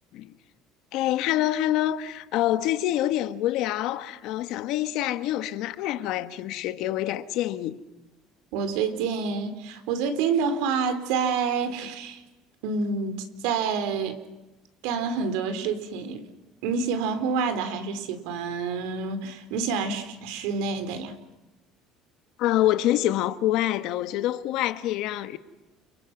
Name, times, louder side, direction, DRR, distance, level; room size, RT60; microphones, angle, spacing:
voice 1, 0.9-7.8 22.4-25.4, left 13 dB, 60° left, 1.5 m, -26 dB
voice 2, 8.5-12.2 12.6-14.2 14.8-16.2 16.6-21.2, right 5 dB, 80° right, 4.0 m, -28 dB
29.5 x 29.0 x 6.2 m
cardioid pair, 165°, 0 cm